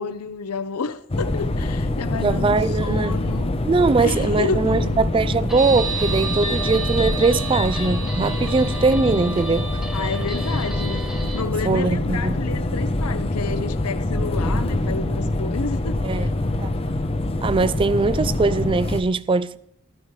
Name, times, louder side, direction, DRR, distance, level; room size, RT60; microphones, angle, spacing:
voice 1, 0.0-3.5 4.0-5.0 9.9-16.4, left 4 dB, 90° left, 0.8 m, -30 dB
sound 1, 1.1-19.0, left 1 dB, 25° left, 0.6 m, -25 dB
voice 2, 2.2-3.2 3.6-9.7 11.6-12.5 16.0-16.3 16.6-16.7 17.4-19.6, right 3 dB, 25° right, 0.3 m, -21 dB
Guitar, 5.5-11.4, right 1 dB, ahead, 1.0 m, -35 dB
sound 2, 5.6-10.2, right 8 dB, 65° right, 2.7 m, -32 dB
13.5 x 13.0 x 3.2 m
head